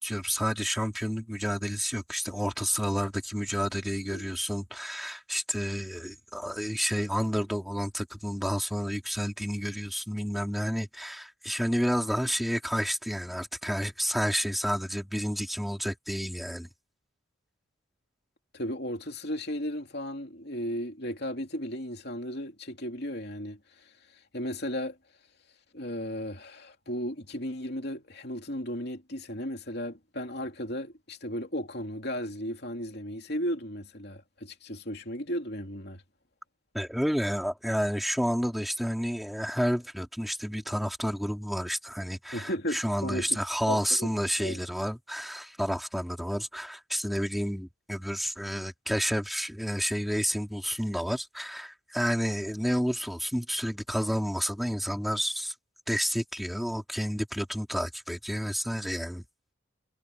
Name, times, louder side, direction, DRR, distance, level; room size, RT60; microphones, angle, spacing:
voice 1, 0.0-16.7 36.7-55.5 55.9-59.2, equal, ahead, 3.5 m, -30 dB
voice 2, 18.5-23.9 24.3-25.0 25.7-36.0 42.3-43.4 43.7-44.1 44.4-44.6, equal, 50° left, 3.1 m, -35 dB
head